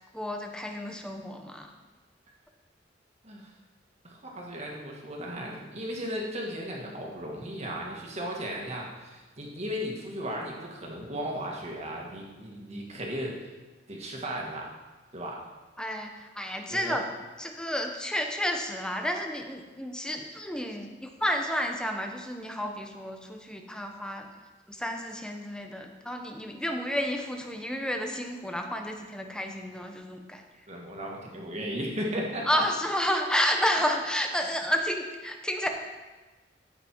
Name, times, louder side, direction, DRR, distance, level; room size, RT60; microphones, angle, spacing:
voice 1, 0.1-1.7 15.8-17.1 17.4-24.3 24.7-30.4 32.5-35.7, equal, 5° left, 4 dB, 0.9 m, -31 dB
voice 2, 4.0-13.5 13.9-14.7 15.1-15.4 16.7-17.0 30.7-32.6 33.7-33.8, equal, 40° right, -1 dB, 2.0 m, -36 dB
14.5 x 5.9 x 4.6 m, 1.2 s
head